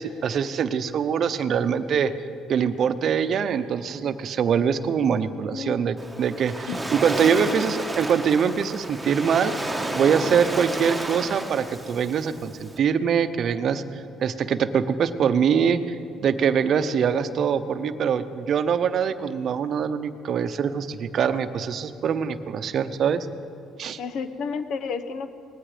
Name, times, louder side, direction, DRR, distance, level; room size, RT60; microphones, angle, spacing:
voice 1, 0.0-2.1 2.5-9.5 9.9-13.8 14.2-15.9 16.2-23.3 23.8-24.0, right 7 dB, 55° right, 12 dB, 0.7 m, -23 dB
Waves surf, 6.0-12.8, right 2 dB, 10° right, 1.3 m, -31 dB
voice 2, 24.0-25.3, left 5 dB, 65° left, 10 dB, 1.0 m, -31 dB
19.0 x 15.0 x 5.0 m, 2.5 s
cardioid pair, 105°, 0 cm